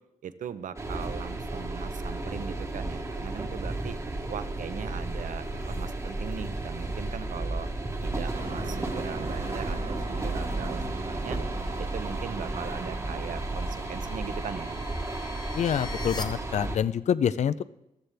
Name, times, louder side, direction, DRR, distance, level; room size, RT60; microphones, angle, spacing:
voice 1, 0.2-4.0 4.3-7.7 8.0-10.8 11.2-11.4 11.8-14.8, right 8 dB, 75° right, 12 dB, 0.7 m, -39 dB
sound 1, 0.8-16.8, right 2 dB, 20° right, 1.2 m, -33 dB
sound 2, 5.3-16.2, left 3 dB, 30° left, 1.1 m, -48 dB
Truck, 8.3-15.0, right 3 dB, 50° right, 1.7 m, -40 dB
voice 2, 15.5-17.6, left 8 dB, 60° left, 15 dB, 0.4 m, -26 dB
14.5 x 13.0 x 3.4 m, 0.86 s
wide cardioid pair, 145°, 13 cm